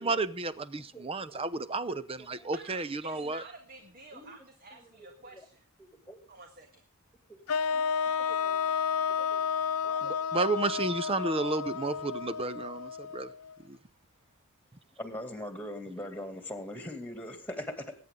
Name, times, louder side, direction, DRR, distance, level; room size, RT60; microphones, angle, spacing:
voice 1, 0.0-3.4 10.0-13.3 13.7-13.8, right 3 dB, 25° right, 0.8 m, -32 dB
voice 2, 0.9-1.4 2.2-2.5 4.1-4.3 4.8-4.9 5.3-5.4 6.1-6.2 7.3-7.4 7.7-7.8 8.2-8.7 9.1-9.4 9.8-10.1 15.0-18.0, left 1 dB, 5° left, 2.5 m, -42 dB
voice 3, 2.5-5.7 6.3-6.8, right 3 dB, 45° right, 1.8 m, -50 dB
sound 1, 7.5-13.5, left 6 dB, 75° left, 0.6 m, -31 dB
22.0 x 9.6 x 3.8 m
head